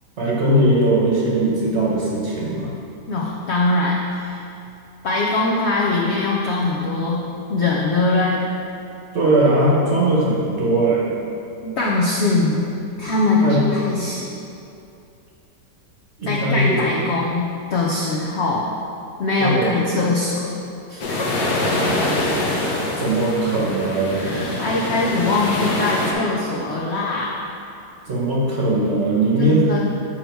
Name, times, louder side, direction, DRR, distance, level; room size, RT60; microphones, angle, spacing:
voice 1, 0.2-2.7 9.1-11.0 13.4-13.6 16.2-16.8 19.4-19.8 22.6-24.4 28.0-29.7, right 1 dB, 45° right, -5 dB, 1.2 m, -19 dB
voice 2, 3.1-4.4 5.0-7.2 7.5-8.4 11.6-12.7 13.0-14.3 16.2-18.6 19.2-20.5 20.9-21.4 24.1-27.4 29.4-29.9, left 2 dB, 80° left, -3 dB, 0.6 m, -22 dB
waves beach small-surf saranda, 21.0-26.1, left 2 dB, 60° left, 1.2 m, -24 dB
6.5 x 3.8 x 4.5 m, 2.6 s
omnidirectional pair, 1.9 m